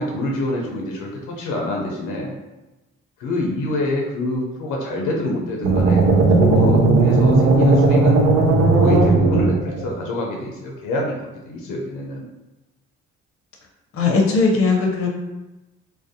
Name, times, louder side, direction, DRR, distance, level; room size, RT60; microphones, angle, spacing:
voice 1, 0.0-2.3 3.2-8.2 8.8-12.3, left 1 dB, 90° left, -1 dB, 0.5 m, -26 dB
sound 1, 5.6-9.9, right 3 dB, 60° right, 0.5 m, -16 dB
voice 2, 13.9-15.1, left 4 dB, 50° left, 0 dB, 0.6 m, -18 dB
2.5 x 2.0 x 2.6 m, 1.0 s
cardioid pair, 90°, 30 cm